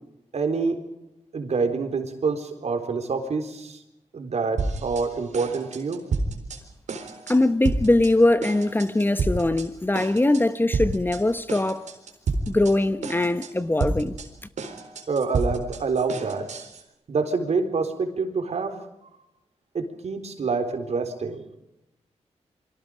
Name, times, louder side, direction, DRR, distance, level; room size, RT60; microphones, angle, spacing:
voice 1, 0.3-0.8 1.3-3.8 4.1-6.0 15.1-16.5 17.1-18.7 19.7-21.4, right 4 dB, 65° right, 3.9 m, -26 dB
sound 1, 4.6-5.1 5.3-6.6 6.9-7.4 7.6-8.1 8.4-9.7 9.9-10.4 10.7-11.2 11.5-12.7 13.0-13.5 13.8-16.8, right 3 dB, 85° right, 4.1 m, -29 dB
voice 2, 7.3-11.9 12.5-14.2, left 2 dB, 15° left, 1.0 m, -21 dB
29.5 x 24.0 x 5.1 m
wide cardioid pair, 90°, 12 cm